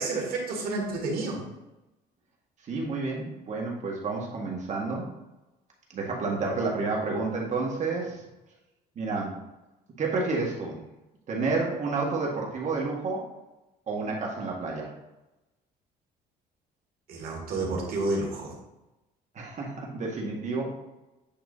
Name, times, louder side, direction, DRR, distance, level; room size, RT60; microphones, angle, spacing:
voice 1, 0.0-1.4 17.1-18.5, right 2 dB, 60° right, -1 dB, 2.1 m, -30 dB
voice 2, 2.6-5.1 5.9-8.2 8.9-9.4 10.0-10.8 11.3-13.3 13.9-14.9 19.3-20.7, right 3 dB, 45° right, -1 dB, 1.6 m, -30 dB
8.8 x 4.4 x 2.7 m, 0.98 s
cardioid pair, 110°, 17 cm